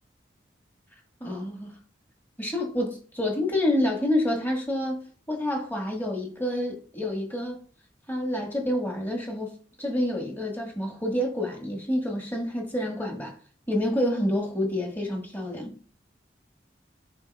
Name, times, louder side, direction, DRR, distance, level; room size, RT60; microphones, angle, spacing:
voice 1, 1.2-1.7 2.4-7.6 8.1-13.3 13.7-15.8, left 1 dB, 10° left, 1.6 m, -28 dB
11.5 x 4.9 x 2.3 m
head